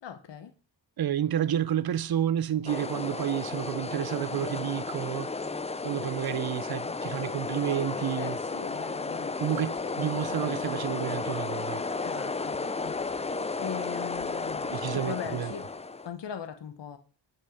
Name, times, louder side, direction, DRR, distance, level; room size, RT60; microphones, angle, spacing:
voice 1, 0.0-0.5 8.2-10.2 12.0-17.0, left 8 dB, 70° left, 0.9 m, -41 dB
voice 2, 1.0-5.3 5.8-8.4 9.4-12.0 14.7-15.5, right 11 dB, 55° right, 0.5 m, -30 dB
sound 1, 2.7-16.1, left 3 dB, 15° left, 0.3 m, -33 dB
9.0 x 5.4 x 5.1 m
wide cardioid pair, 125°, 45 cm